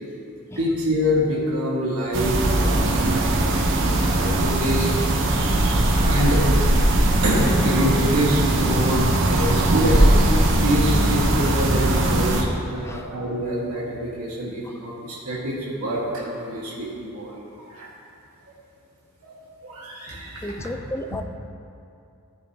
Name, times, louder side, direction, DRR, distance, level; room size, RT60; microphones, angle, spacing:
voice 1, 0.6-4.9 5.9-6.4 7.2-17.8 19.2-19.4 19.6-20.6, equal, 85° right, -5 dB, 1.5 m, -26 dB
sound 1, 2.1-12.4, right 1 dB, 55° right, 0.8 m, -20 dB
voice 2, 20.4-21.2, left 1 dB, 10° left, 7 dB, 0.3 m, -33 dB
13.5 x 6.4 x 2.8 m, 2.6 s
head